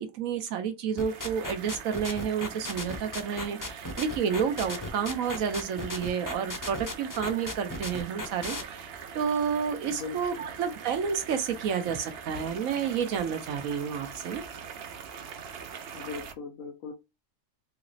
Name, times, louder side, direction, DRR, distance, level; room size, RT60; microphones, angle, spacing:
voice 1, 0.0-14.4, right 7 dB, 85° right, 1.2 m, -30 dB
sound 1, 1.0-8.6, left 2 dB, 25° left, 0.5 m, -36 dB
sound 2, 1.0-16.3, right 6 dB, 60° right, 0.8 m, -43 dB
voice 2, 9.9-10.4 15.9-16.9, left 5 dB, 90° left, 1.2 m, -39 dB
4.0 x 2.9 x 2.6 m
omnidirectional pair, 1.4 m